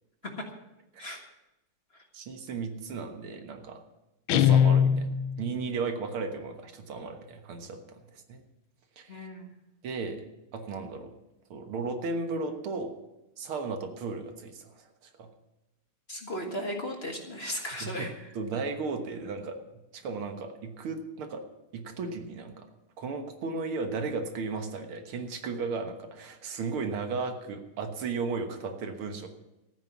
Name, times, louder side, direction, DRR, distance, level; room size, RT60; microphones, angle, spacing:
voice 1, 2.1-3.8 4.3-8.0 8.3-8.4 9.0-9.3 9.8-10.2 10.5-11.1 11.5-12.9 13.4-14.9 15.2-15.3 17.8-18.1 18.4-19.6 19.9-21.4 21.7-22.7 23.0-29.3, right 4 dB, 75° right, 6 dB, 2.2 m, -35 dB
Guitar, 4.3-5.6, left 8 dB, 75° left, 1.5 m, -22 dB
voice 2, 9.1-9.5 16.1-18.1, equal, 30° left, 2 dB, 1.6 m, -36 dB
14.0 x 9.5 x 7.1 m, 0.96 s
omnidirectional pair, 2.4 m